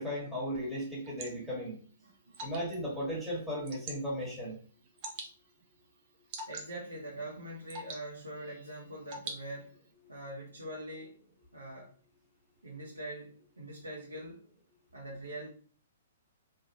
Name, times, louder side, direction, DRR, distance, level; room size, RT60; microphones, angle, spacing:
voice 1, 0.0-1.8 2.4-4.6, equal, 5° left, -7 dB, 1.5 m, -36 dB
Water / Drip, 0.5-9.9, right 3 dB, 40° right, 0.7 m, -48 dB
voice 2, 2.0-2.3 6.5-9.8 10.1-11.1 11.5-11.9 12.6-14.4 14.9-15.5, right 1 dB, 85° right, -5 dB, 0.9 m, -43 dB
3.2 x 2.3 x 2.9 m, 0.43 s
figure-of-eight pair, 120°, 0 cm